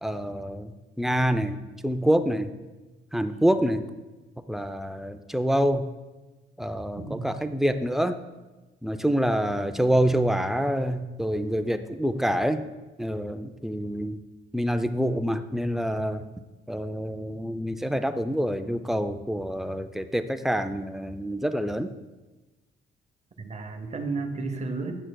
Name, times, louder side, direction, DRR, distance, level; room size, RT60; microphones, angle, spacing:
voice 1, 0.0-2.5 3.1-3.9 4.5-5.9 6.6-8.2 8.8-12.7 13.0-14.2 14.5-16.3 16.7-21.9, equal, ahead, 8 dB, 0.4 m, -26 dB
voice 2, 7.0-7.3 23.4-24.9, right 3 dB, 35° right, 6 dB, 0.7 m, -32 dB
10.0 x 6.1 x 2.2 m, 1.2 s
cardioid pair, 90°, 20 cm